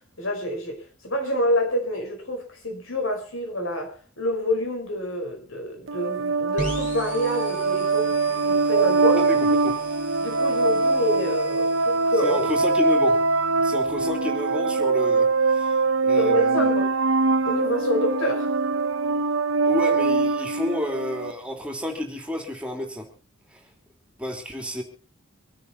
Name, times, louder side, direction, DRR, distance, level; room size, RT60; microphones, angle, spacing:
voice 1, 0.0-9.3 10.2-12.5 16.1-16.9 17.4-18.6, equal, 75° left, 4.9 m, -27 dB
sound 1, 5.9-21.3, right 3 dB, 75° right, 0.8 m, -23 dB
sound 2, 6.6-14.2, equal, 40° left, 5.7 m, -39 dB
voice 2, 9.2-9.8 12.2-13.2 13.6-15.8 16.0-16.7 19.7-23.1 23.5-23.6 24.2-24.8, left 1 dB, 5° right, 3.3 m, -30 dB
25.5 x 9.9 x 4.3 m
head